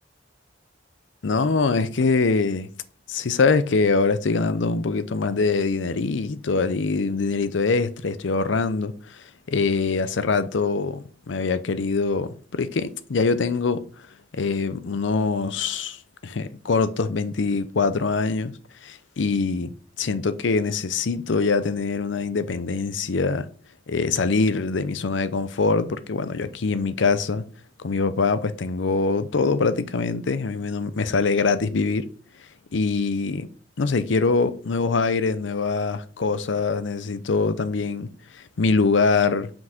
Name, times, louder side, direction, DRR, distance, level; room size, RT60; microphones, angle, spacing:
voice 1, 1.2-2.7 3.1-9.2 9.5-13.8 14.3-18.5 18.8-19.7 20.0-23.5 23.9-27.4 27.8-32.1 32.7-33.5 33.8-39.5, left 4 dB, 85° left, 0.6 m, -23 dB
6.0 x 5.0 x 3.5 m
head